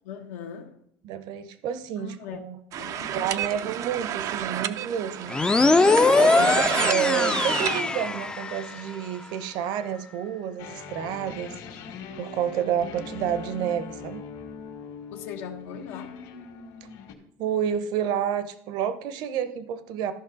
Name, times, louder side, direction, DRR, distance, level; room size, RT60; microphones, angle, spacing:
voice 1, 0.0-0.8 2.0-2.4 2.8-3.3 6.2-6.5 15.1-16.2, left 8 dB, 85° left, 1.3 m, -40 dB
voice 2, 1.0-2.6 3.0-5.4 6.2-11.6 12.2-14.2 17.4-20.1, right 9 dB, 60° right, 0.9 m, -29 dB
sound 1, 2.7-7.8, right 10 dB, 45° right, 0.5 m, -31 dB
sound 2, 5.3-8.8, left 3 dB, 10° left, 0.4 m, -21 dB
sound 3, 10.6-17.1, left 5 dB, 65° left, 1.9 m, -40 dB
14.0 x 5.4 x 4.0 m
cardioid pair, 135°, 8 cm